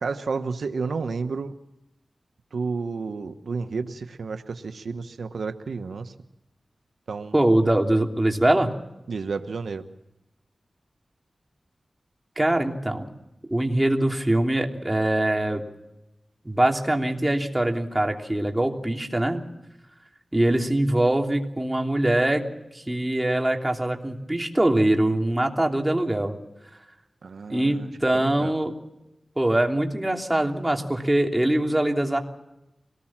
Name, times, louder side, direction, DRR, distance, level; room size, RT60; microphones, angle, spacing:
voice 1, 0.0-1.5 2.5-6.1 7.1-7.3 9.1-9.8 27.2-28.5, right 4 dB, 85° right, 8 dB, 1.1 m, -31 dB
voice 2, 7.3-8.7 12.4-13.1 13.5-15.6 16.4-19.4 20.3-22.4 22.7-26.4 27.5-28.7 29.4-32.2, right 1 dB, 15° right, 2 dB, 3.1 m, -23 dB
24.5 x 19.0 x 7.4 m, 0.91 s
wide cardioid pair, 70°, 0 cm